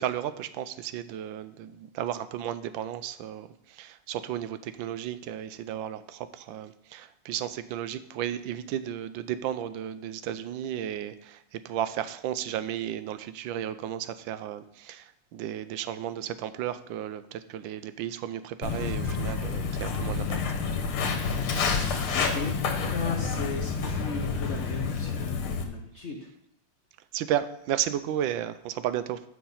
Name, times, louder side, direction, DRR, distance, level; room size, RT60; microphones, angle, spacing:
voice 1, 0.0-20.4 27.1-29.2, right 10 dB, 75° right, 13 dB, 1.2 m, -33 dB
Walk footsteps, 18.6-25.6, left 5 dB, 85° left, 2.0 m, -29 dB
voice 2, 22.1-26.3, left 4 dB, 60° left, 1 dB, 0.7 m, -36 dB
8.1 x 6.1 x 5.5 m, 0.80 s
omnidirectional pair, 2.3 m